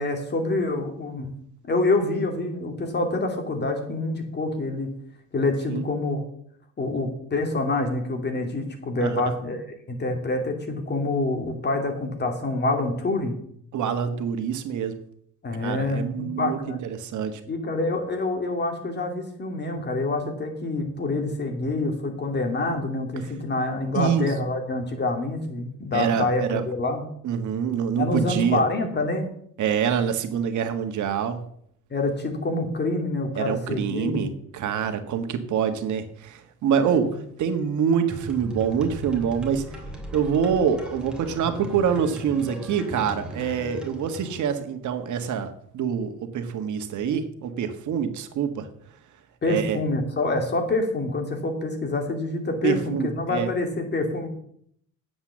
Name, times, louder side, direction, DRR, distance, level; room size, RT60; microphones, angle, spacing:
voice 1, 0.0-1.3 1.7-4.9 5.3-6.2 6.8-13.4 15.4-16.8 17.5-27.0 28.0-29.3 31.9-34.3 36.7-37.1 49.4-54.3, left 2 dB, 35° left, 5 dB, 2.9 m, -26 dB
voice 2, 9.0-9.3 13.7-14.9 15.6-17.4 23.9-24.3 25.9-26.6 27.2-28.6 29.6-31.4 33.3-37.1 37.4-39.6 40.1-48.7 49.4-49.8 52.6-53.5, right 7 dB, 65° right, 8 dB, 1.6 m, -26 dB
sound 1, 38.1-44.4, equal, 5° right, 3.0 m, -38 dB
9.8 x 8.0 x 7.5 m, 0.66 s
cardioid pair, 120°, 32 cm